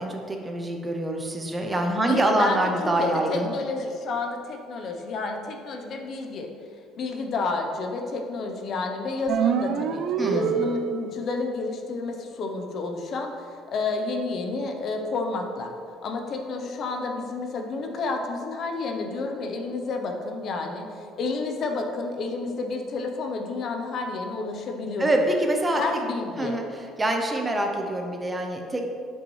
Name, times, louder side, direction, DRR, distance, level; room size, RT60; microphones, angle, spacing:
voice 1, 0.0-3.5 10.2-10.6 25.0-25.8 26.4-26.6 27.0-28.8, right 1 dB, 15° right, 2 dB, 0.6 m, -25 dB
voice 2, 1.9-6.5 7.0-15.7 16.0-20.9 21.2-25.1 25.7-26.6, left 3 dB, 45° left, 4 dB, 0.7 m, -30 dB
sound 1, 9.3-11.3, right 8 dB, 60° right, 0.4 m, -26 dB
10.0 x 5.3 x 3.1 m, 2.3 s
cardioid pair, 155°, 0 cm